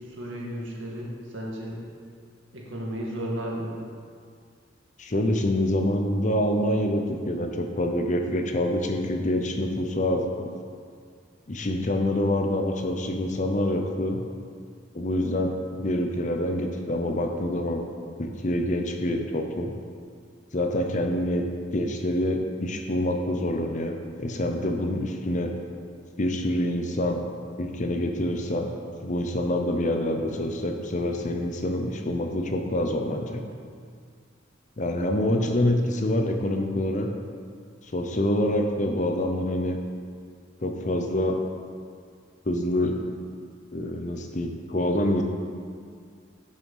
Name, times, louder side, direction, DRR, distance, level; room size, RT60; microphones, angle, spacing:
voice 1, 0.1-1.8 2.5-3.7, equal, 85° right, -3 dB, 2.1 m, -33 dB
voice 2, 5.0-10.5 11.5-14.2 14.9-15.5 15.8-17.8 18.2-19.7 20.5-21.5 21.7-25.5 26.2-27.2 27.6-28.7 29.0-33.4 34.8-37.1 37.8-39.8 40.6-41.4 42.5-43.0 43.7-45.2, left 1 dB, 40° left, 4 dB, 0.8 m, -26 dB
11.0 x 6.6 x 5.5 m, 2.2 s
head